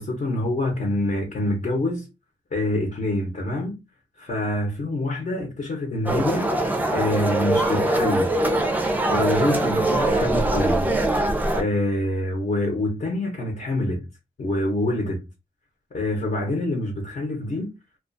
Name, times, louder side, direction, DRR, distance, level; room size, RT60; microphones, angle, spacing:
voice 1, 0.0-2.1 2.5-3.8 4.2-6.5 6.9-8.4 9.1-10.9 11.5-14.0 14.4-15.3 15.9-17.7, left 1 dB, 55° left, 0.8 m, -26 dB
sound 1, 6.1-11.6, right 1 dB, 10° right, 0.4 m, -22 dB
2.3 x 2.3 x 2.5 m
wide cardioid pair, 90°, 16 cm